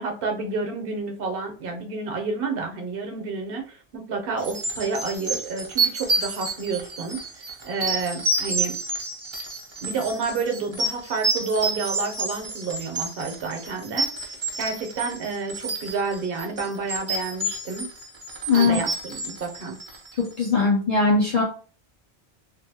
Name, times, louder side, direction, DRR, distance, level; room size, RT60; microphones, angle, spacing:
voice 1, 0.0-8.8 9.8-14.1 14.6-17.9 18.5-19.8, right 4 dB, 60° right, 3 dB, 0.8 m, -30 dB
sound 1, 4.4-20.3, right 2 dB, 35° right, 0.5 m, -29 dB
voice 2, 18.5-18.8 20.2-21.4, left 4 dB, 40° left, -3 dB, 0.7 m, -20 dB
2.6 x 2.6 x 2.7 m, 0.39 s
omnidirectional pair, 1.1 m